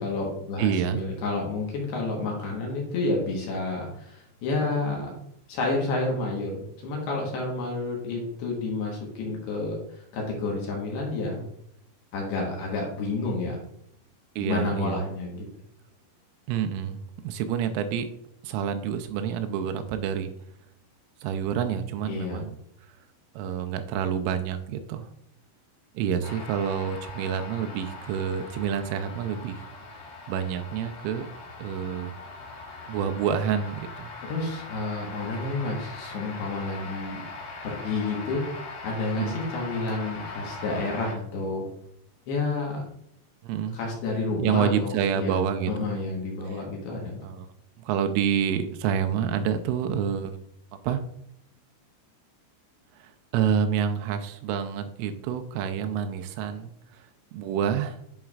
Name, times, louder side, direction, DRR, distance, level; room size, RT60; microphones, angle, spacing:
voice 1, 0.0-5.2 5.5-11.4 12.1-13.6 14.4-15.5 22.1-22.4 34.3-37.2 37.6-41.6 42.3-42.8 43.7-45.4 45.7-47.2, left 3 dB, 70° left, -1 dB, 2.8 m, -30 dB
voice 2, 0.6-1.0 14.4-15.0 16.5-18.1 18.4-20.3 21.2-22.6 23.4-25.1 26.0-29.6 30.3-31.3 31.6-32.1 32.9-34.1 39.2-39.4 43.4-43.8 44.4-45.9 47.2-47.5 47.8-50.4 50.8-51.0 53.0-56.7 57.3-58.0, right 8 dB, 85° right, 7 dB, 2.9 m, -28 dB
sound 1, 26.2-41.2, left 3 dB, 85° left, 1.8 m, -41 dB
11.0 x 4.4 x 2.4 m, 0.73 s
omnidirectional pair, 5.6 m